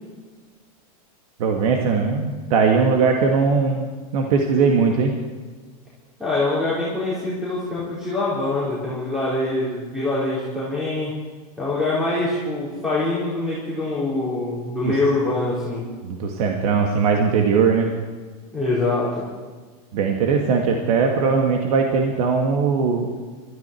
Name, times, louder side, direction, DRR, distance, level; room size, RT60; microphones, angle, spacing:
voice 1, 1.4-3.9 4.1-5.1 14.8-14.9 16.0-17.9 19.9-23.1, right 5 dB, 75° right, 2 dB, 2.0 m, -19 dB
voice 2, 6.2-11.1 11.6-15.9 18.5-19.3, left 2 dB, 5° right, -9 dB, 4.4 m, -24 dB
21.5 x 14.0 x 4.6 m, 1.5 s
supercardioid pair, 145°, 19 cm